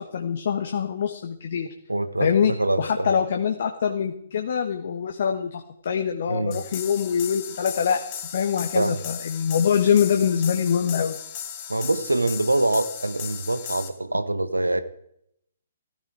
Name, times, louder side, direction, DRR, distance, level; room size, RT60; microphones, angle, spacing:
voice 1, 0.0-1.7 2.2-2.5 2.8-8.0 8.3-11.2, left 7 dB, 50° left, 4 dB, 1.4 m, -24 dB
voice 2, 1.9-3.1 6.3-6.6 8.7-9.0 11.7-14.8, right 2 dB, 85° right, 13 dB, 1.2 m, -24 dB
sound 1, 6.5-13.9, left 9 dB, 30° left, 2.9 m, -36 dB
15.5 x 13.5 x 4.8 m, 0.74 s
figure-of-eight pair, 130°, 0 cm